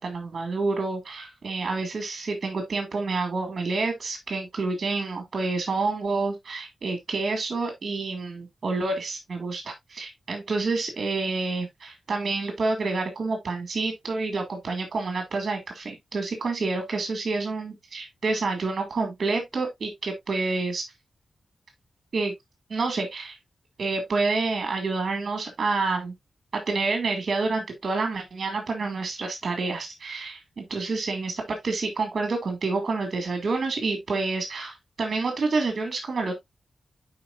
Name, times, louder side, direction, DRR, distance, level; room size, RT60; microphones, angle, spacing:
voice 1, 0.0-20.9 22.1-22.3 22.7-23.4 23.8-26.1 26.5-36.3, right 3 dB, 45° right, 2.2 m, -28 dB
9.5 x 5.0 x 2.5 m
wide cardioid pair, 160°, 0 cm